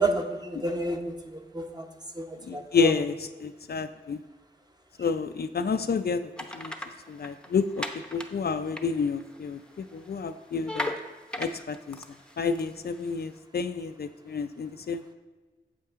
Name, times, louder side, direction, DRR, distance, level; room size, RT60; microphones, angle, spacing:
voice 1, 0.0-1.9 2.1-2.9, right 2 dB, 20° right, 4 dB, 1.0 m, -30 dB
voice 2, 2.5-4.2 5.0-6.7 7.1-7.9 8.1-10.9 11.4-12.0 12.4-15.1, left 5 dB, 60° left, 9 dB, 0.4 m, -29 dB
sound 1, 6.4-8.3 8.7-9.6 9.8-13.2, left 1 dB, 5° left, 0.7 m, -36 dB
8.6 x 7.6 x 3.6 m, 1.3 s
wide cardioid pair, 70°, 18 cm